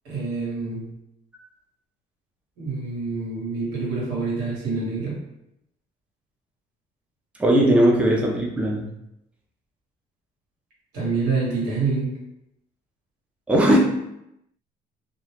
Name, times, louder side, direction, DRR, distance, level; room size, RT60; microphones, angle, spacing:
voice 1, 0.0-0.9 2.6-5.2 10.9-12.1, right 4 dB, 85° right, -6 dB, 1.3 m, -26 dB
voice 2, 7.4-8.9 13.5-13.8, right 1 dB, 5° right, -2 dB, 0.4 m, -18 dB
2.4 x 2.1 x 3.2 m, 0.84 s
cardioid pair, 110°, 17 cm